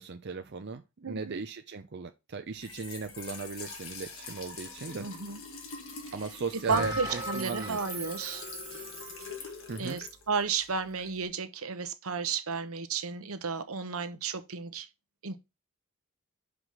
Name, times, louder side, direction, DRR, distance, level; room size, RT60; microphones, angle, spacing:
voice 1, 0.0-5.1 6.1-7.8 9.7-10.0, right 4 dB, 50° right, 0.6 m, -37 dB
voice 2, 1.0-1.4 5.0-5.4 6.7-8.4 9.8-14.9 15.2-15.4, right 5 dB, 80° right, 1.0 m, -33 dB
Trickle dribble / Fill (with liquid), 2.5-11.3, left 4 dB, 65° left, 2.0 m, -45 dB
Bell, 6.7-9.5, right 1 dB, 20° right, 3.1 m, -38 dB
5.8 x 5.0 x 6.3 m
head